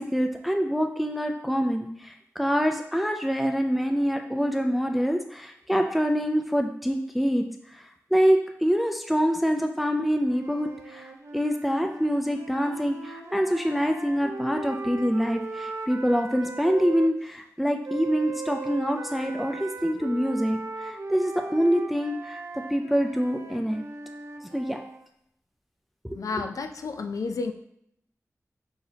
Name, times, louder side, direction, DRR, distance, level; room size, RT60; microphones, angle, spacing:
voice 1, 0.0-7.4 7.7-7.8 8.1-22.4 22.7-23.8 24.5-24.8 26.0-26.2, equal, ahead, 4 dB, 0.3 m, -25 dB
sound 1, 10.2-17.1 17.8-25.0, right 3 dB, 60° right, 0.5 m, -38 dB
voice 2, 26.2-27.5, left 4 dB, 80° left, 7 dB, 0.3 m, -31 dB
5.7 x 2.8 x 2.7 m, 0.75 s
wide cardioid pair, 85°, 6 cm